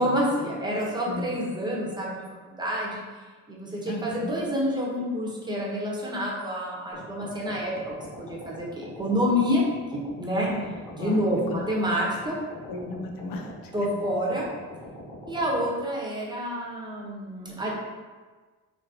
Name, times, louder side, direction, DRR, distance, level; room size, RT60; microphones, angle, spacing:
voice 1, 0.0-3.0 3.5-9.6 9.9-10.5 10.9-12.4 13.7-14.5 15.3-17.7, equal, 15° right, -4 dB, 0.8 m, -28 dB
voice 2, 3.9-4.4 10.5-11.2 11.5-11.7 12.7-13.9, left 2 dB, 90° left, 2 dB, 0.6 m, -36 dB
sound 1, 6.9-15.6, left 1 dB, 10° left, 1.1 m, -43 dB
4.1 x 2.9 x 2.7 m, 1.4 s
cardioid pair, 110°, 33 cm